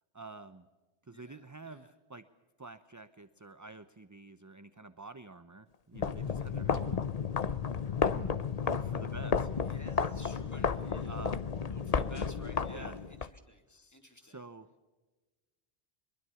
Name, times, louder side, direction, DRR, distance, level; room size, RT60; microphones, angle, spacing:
voice 1, 0.1-0.7 1.1-2.2 2.6-7.1 8.0-8.3 8.6-9.5 11.0-11.4 12.7-13.0 13.7-14.7, right 3 dB, 20° right, 12 dB, 0.6 m, -48 dB
voice 2, 1.1-1.9 9.7-11.2 11.7-13.6 13.9-14.4, equal, 15° left, 4 dB, 2.8 m, -53 dB
sound 1, 5.9-13.3, left 6 dB, 40° left, 0.8 m, -32 dB
23.0 x 22.5 x 7.0 m, 1.2 s
omnidirectional pair, 1.1 m